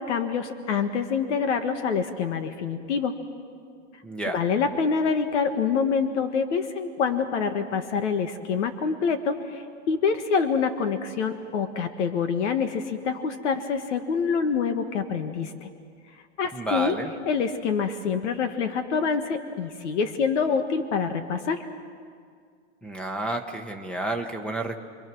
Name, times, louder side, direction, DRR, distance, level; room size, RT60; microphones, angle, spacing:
voice 1, 0.0-3.1 4.3-15.7 16.4-17.0 17.3-21.7, left 5 dB, 80° left, 8 dB, 1.7 m, -26 dB
voice 2, 4.0-4.4 16.5-17.1 22.8-24.8, right 2 dB, 5° left, 7 dB, 1.2 m, -30 dB
29.5 x 23.0 x 6.2 m, 2.1 s
supercardioid pair, 155°, 35 cm